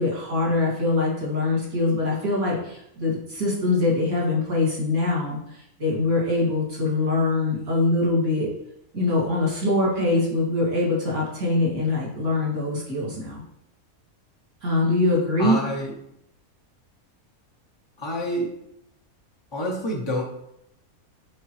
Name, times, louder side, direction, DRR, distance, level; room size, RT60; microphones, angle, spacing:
voice 1, 0.0-8.5 8.9-13.4 14.6-15.6, left 2 dB, 85° right, -5 dB, 2.8 m, -23 dB
voice 2, 15.4-15.9 18.0-18.5 19.5-20.2, left 1 dB, 25° left, -2 dB, 0.6 m, -27 dB
9.3 x 3.5 x 3.2 m, 0.80 s
omnidirectional pair, 1.5 m